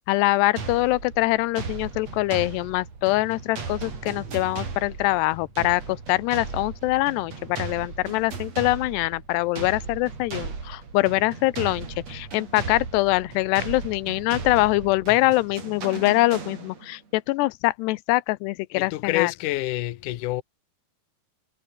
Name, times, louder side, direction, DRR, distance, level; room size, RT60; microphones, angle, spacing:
voice 1, 0.1-19.3, left 20 dB, 85° left, 2.8 m, -24 dB
sound 1, 0.6-17.0, right 5 dB, 40° right, 5.1 m, -37 dB
voice 2, 18.7-20.4, left 16 dB, 65° left, 2.1 m, -27 dB
omnidirectional pair, 4.8 m